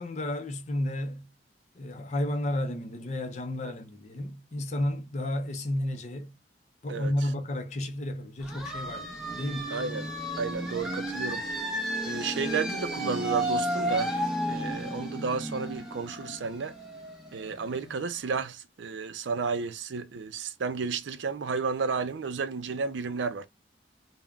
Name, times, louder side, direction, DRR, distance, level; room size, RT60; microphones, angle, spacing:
voice 1, 0.0-1.3 1.7-6.4 6.8-9.1 9.3-9.8, left 1 dB, 40° left, 0.5 m, -32 dB
sound 1, 8.4-17.9, right 1 dB, ahead, 0.8 m, -33 dB
voice 2, 9.7-11.4 12.0-14.2 14.5-16.8 17.3-23.5, right 4 dB, 75° right, 0.4 m, -32 dB
3.5 x 2.1 x 2.2 m
head